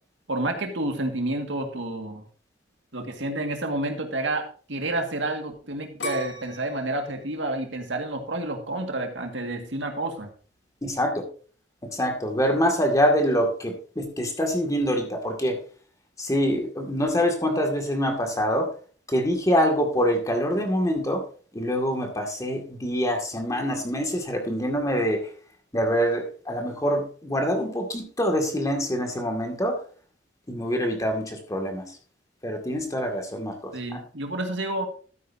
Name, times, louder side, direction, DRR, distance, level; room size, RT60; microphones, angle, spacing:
voice 1, 0.3-2.3 2.9-10.3 33.7-34.9, right 2 dB, 80° right, 4 dB, 2.0 m, -29 dB
sound 1, 6.0-8.9 9.4-9.9, left 1 dB, 85° left, 3.3 m, -39 dB
voice 2, 10.8-11.2 11.9-15.6 16.2-18.7 19.1-21.2 21.5-25.2 25.7-29.8 30.5-31.8 32.4-34.0, equal, 20° left, 3 dB, 2.1 m, -25 dB
13.0 x 9.4 x 2.7 m, 0.41 s
head